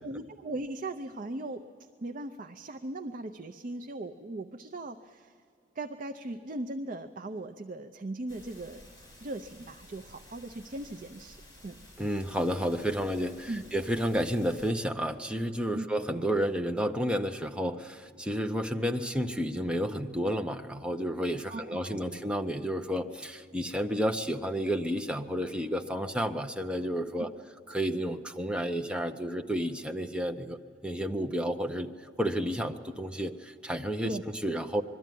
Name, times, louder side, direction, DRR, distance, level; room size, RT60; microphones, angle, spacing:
voice 1, 0.0-5.3 5.8-8.8 9.2-11.8 13.5-13.6 15.7-15.9 21.5-22.2 27.1-27.3 34.0-34.2, right 2 dB, 45° right, 6 dB, 0.6 m, -39 dB
sound 1, 8.3-14.7, left 1 dB, 20° left, 5.0 m, -53 dB
voice 2, 12.0-27.3 27.7-31.9 32.2-34.8, equal, 5° right, 5 dB, 0.7 m, -31 dB
21.5 x 13.5 x 9.2 m, 2.5 s
head